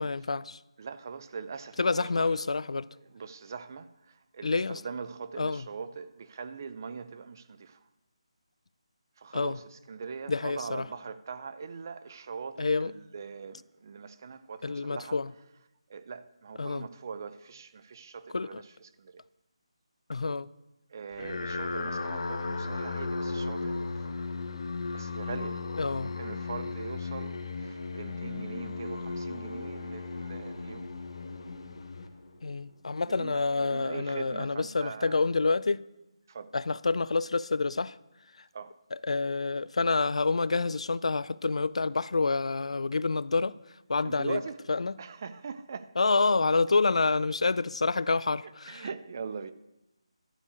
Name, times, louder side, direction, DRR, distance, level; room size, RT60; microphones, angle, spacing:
voice 1, 0.0-0.6 1.8-2.9 4.4-4.8 5.4-5.7 9.3-9.6 10.3-10.9 12.6-12.9 14.6-15.3 16.6-16.9 18.3-18.6 20.1-20.5 25.8-26.1 32.4-35.8 36.5-38.0 38.9-43.6 43.9-44.4 44.7-45.0 46.0-48.9, left 3 dB, 75° left, 0.4 m, -28 dB
voice 2, 0.8-2.3 3.1-7.8 9.2-15.2 15.9-19.2 20.9-24.1 24.9-25.6 25.9-30.9 33.0-35.2 36.3-36.5 38.5-38.7 44.0-44.6 45.0-46.1 48.7-49.5, right 5 dB, 35° right, 0.5 m, -41 dB
sound 1, 21.1-32.6, left 3 dB, 60° left, 1.3 m, -36 dB
12.0 x 5.6 x 8.0 m
figure-of-eight pair, 170°, 3 cm